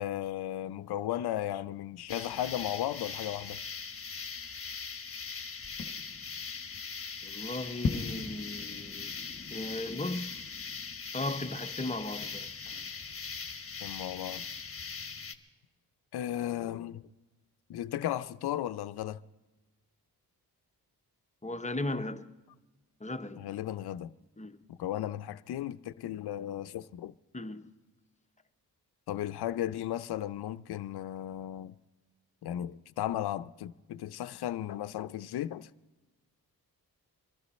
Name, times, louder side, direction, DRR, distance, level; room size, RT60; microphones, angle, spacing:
voice 1, 0.0-3.6 13.8-14.4 16.1-17.0 17.7-19.2 23.4-24.1 24.7-27.1 29.1-31.7 32.4-35.7, left 12 dB, 75° left, 0.5 m, -35 dB
sound 1, 2.1-15.3, left 5 dB, 35° left, 1.1 m, -39 dB
voice 2, 7.2-9.1 9.5-10.5 11.1-12.5 12.7-12.8 21.4-22.3 23.0-23.5 24.4-24.6 27.3-27.7, left 2 dB, 20° left, 0.8 m, -37 dB
23.0 x 13.0 x 4.2 m
cardioid pair, 85°, 39 cm